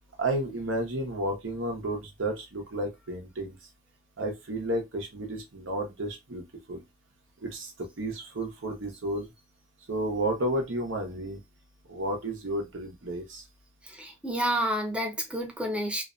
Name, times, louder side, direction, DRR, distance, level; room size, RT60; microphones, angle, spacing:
voice 1, 0.2-3.6 4.2-6.8 7.4-9.3 9.9-11.4 11.9-13.4, right 1 dB, 65° right, 0.8 m, -32 dB
voice 2, 13.8-16.0, equal, 5° right, 0.5 m, -30 dB
2.5 x 2.2 x 2.4 m
head